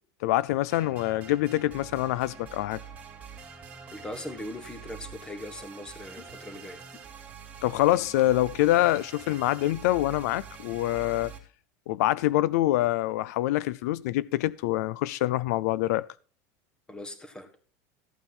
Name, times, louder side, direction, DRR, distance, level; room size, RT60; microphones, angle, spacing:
voice 1, 0.2-2.8 7.6-11.3 11.9-16.1, left 15 dB, 75° left, 0.5 m, -25 dB
sound 1, 0.7-11.4, right 6 dB, 20° right, 2.7 m, -45 dB
voice 2, 3.9-7.0 16.9-17.5, left 1 dB, 10° left, 1.6 m, -40 dB
14.0 x 8.8 x 4.4 m
supercardioid pair, 170°, 9 cm